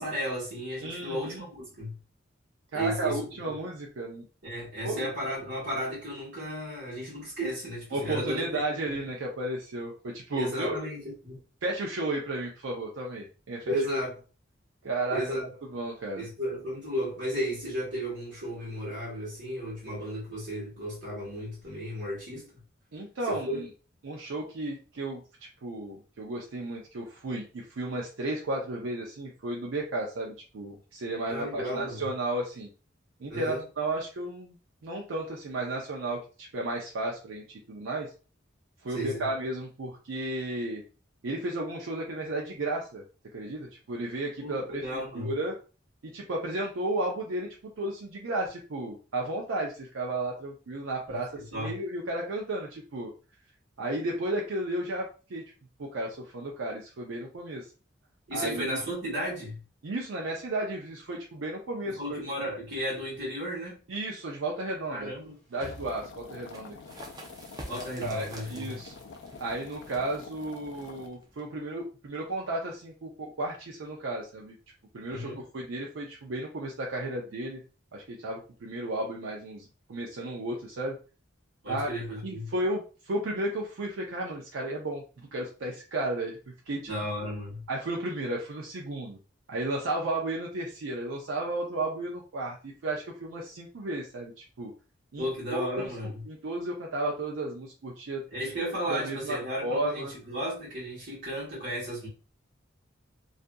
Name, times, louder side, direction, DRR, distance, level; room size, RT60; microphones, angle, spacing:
voice 1, 0.0-1.9 2.7-3.2 4.4-8.4 8.8-9.0 10.3-11.4 13.7-14.2 15.1-15.5 16.2-22.5 23.3-23.6 31.3-32.1 33.3-33.6 38.9-39.3 44.4-45.3 51.1-51.8 58.3-59.6 61.8-63.8 64.9-65.4 67.7-68.8 75.1-75.4 81.6-82.5 86.9-87.6 95.2-96.2 98.3-102.1, equal, 65° right, 1.3 m, -34 dB
voice 2, 0.8-1.5 2.7-4.2 4.8-5.0 7.9-10.8 11.6-13.8 14.8-15.2 15.7-16.3 22.9-23.7 24.0-25.2 25.6-32.7 33.2-34.6 34.8-38.1 38.8-40.8 41.2-43.0 43.3-45.6 46.0-53.1 53.8-55.4 55.8-57.7 58.3-58.8 59.8-62.2 63.9-65.1 65.5-66.8 68.0-68.9 69.4-74.6 74.9-77.6 77.9-81.0 81.7-81.9 82.2-86.9 87.7-89.2 89.5-94.7 95.1-95.9 96.3-98.2 98.9-100.1, right 2 dB, 90° right, 0.5 m, -33 dB
sound 1, 64.8-67.0, left 2 dB, ahead, 1.3 m, -52 dB
sound 2, 65.6-71.1, left 4 dB, 70° left, 0.3 m, -47 dB
sound 3, 66.3-71.7, right 1 dB, 20° right, 0.4 m, -48 dB
2.6 x 2.4 x 2.2 m
head